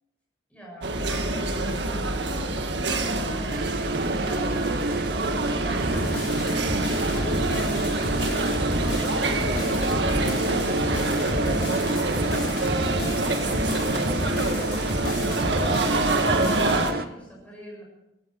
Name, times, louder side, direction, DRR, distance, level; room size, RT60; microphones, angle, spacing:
voice 1, 0.5-3.1 3.4-6.4 13.0-17.8, right 1 dB, 5° left, -2 dB, 7.1 m, -44 dB
sound 1, 0.8-16.9, right 2 dB, 75° right, 1.7 m, -26 dB
sound 2, 3.5-17.1, right 2 dB, 50° right, 0.7 m, -31 dB
sound 3, 5.8-16.8, left 1 dB, 60° left, 4.2 m, -33 dB
17.5 x 15.5 x 4.7 m, 0.90 s
head